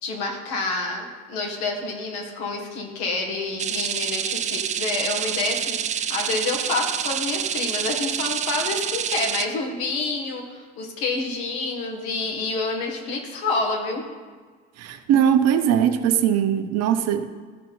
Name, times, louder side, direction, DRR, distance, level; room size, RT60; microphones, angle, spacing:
voice 1, 0.0-14.0, left 3 dB, 60° left, 1 dB, 1.8 m, -28 dB
sound 1, 3.6-9.5, right 8 dB, 20° right, 0.4 m, -27 dB
voice 2, 14.8-17.3, right 9 dB, 45° right, 8 dB, 0.8 m, -20 dB
14.0 x 5.3 x 4.2 m, 1.5 s
figure-of-eight pair, 60°, 37 cm